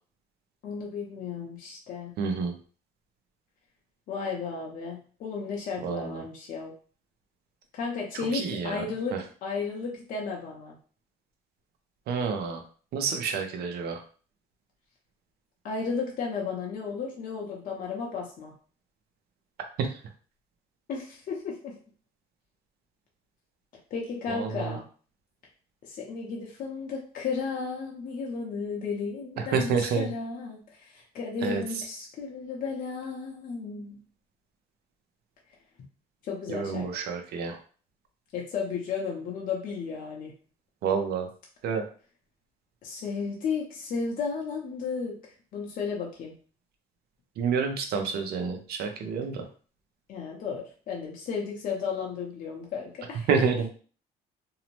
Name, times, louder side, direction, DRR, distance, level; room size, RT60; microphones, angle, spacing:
voice 1, 0.6-2.1 4.1-6.7 7.7-10.8 15.6-18.5 20.9-21.7 23.9-24.9 25.8-34.0 36.2-36.9 38.3-40.3 42.8-46.3 50.1-53.3, left 5 dB, 55° left, -2 dB, 0.6 m, -34 dB
voice 2, 2.2-2.5 5.8-6.0 8.5-8.8 12.1-12.6 12.9-14.0 24.3-24.7 29.5-30.0 31.4-31.6 36.5-37.6 40.8-41.3 41.6-41.8 47.4-49.4 53.3-53.7, right 5 dB, 70° right, 5 dB, 0.6 m, -28 dB
2.7 x 2.0 x 3.0 m, 0.41 s
cardioid pair, 110°, 17 cm